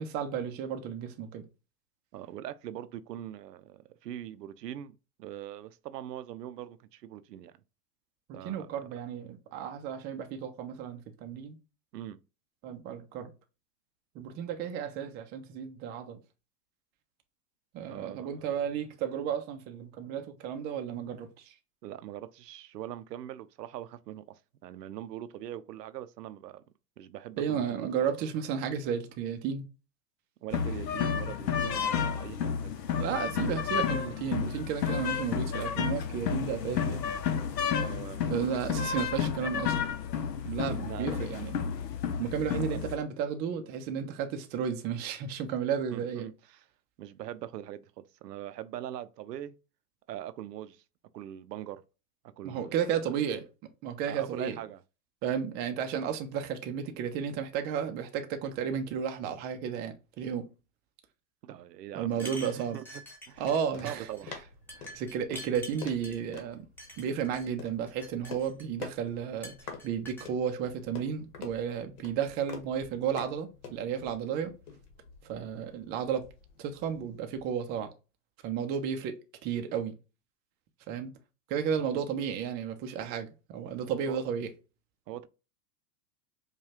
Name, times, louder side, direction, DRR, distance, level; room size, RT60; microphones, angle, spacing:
voice 1, 0.0-1.5 8.4-11.6 12.6-13.3 14.1-16.2 17.7-21.5 27.4-29.6 33.0-37.0 38.3-39.8 40.4-41.6 42.2-46.3 52.4-53.4 53.8-54.6 55.2-60.5 61.9-62.8 63.4-64.1 64.9-66.7 67.0-74.5 75.2-76.3 76.6-77.9 78.4-79.2 79.4-79.9 80.9-81.1 81.5-84.5, right 8 dB, 25° right, 0.4 m, -33 dB
voice 2, 2.1-7.5 8.3-8.7 11.9-12.2 17.9-18.5 21.8-26.6 27.0-27.9 30.4-32.8 37.8-39.1 40.9-41.2 42.5-42.9 45.9-46.6 47.0-49.6 50.1-50.8 51.1-51.8 52.4-52.9 54.1-54.8 61.4-62.8 63.3-63.5 63.8-64.3 84.1-84.2 85.1-85.3, right 12 dB, 85° right, 0.5 m, -42 dB
sound 1, 30.5-43.0, left 7 dB, 90° left, 0.7 m, -31 dB
sound 2, 62.1-63.6 63.9-64.2 64.7-66.2 66.8-67.5 67.9-68.9 69.4-70.3, left 1 dB, 5° left, 0.9 m, -46 dB
sound 3, 63.3-77.5, left 6 dB, 65° left, 1.3 m, -48 dB
4.8 x 2.3 x 2.8 m
hypercardioid pair, 110°, 48 cm